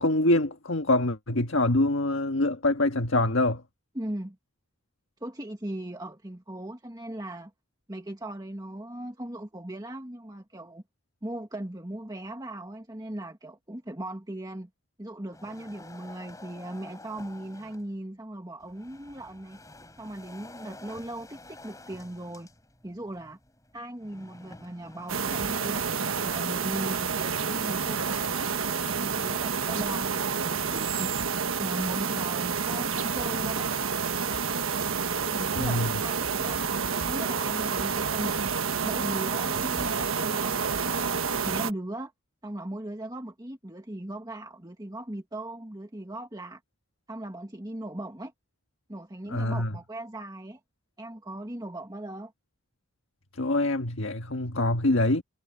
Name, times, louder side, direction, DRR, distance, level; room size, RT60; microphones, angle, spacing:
voice 1, 0.0-3.6 35.5-35.9 49.3-49.7 53.4-55.2, left 2 dB, 75° left, 1.5 m, -25 dB
voice 2, 4.0-4.4 5.2-7.5 7.9-10.8 11.2-14.7 15.0-19.6 20.0-22.5 22.8-23.4 23.7-25.9 26.2-31.1 31.6-34.6 35.2-36.7 37.1-38.4 38.8-41.2 41.4-42.1 42.4-46.6 47.1-48.3 48.9-50.6 51.0-52.3, right 1 dB, 20° right, 1.8 m, -38 dB
sound 1, 15.3-17.9 18.6-27.5, left 2 dB, 15° left, 4.6 m, -50 dB
sound 2, 25.1-41.7, right 6 dB, 90° right, 1.3 m, -29 dB
head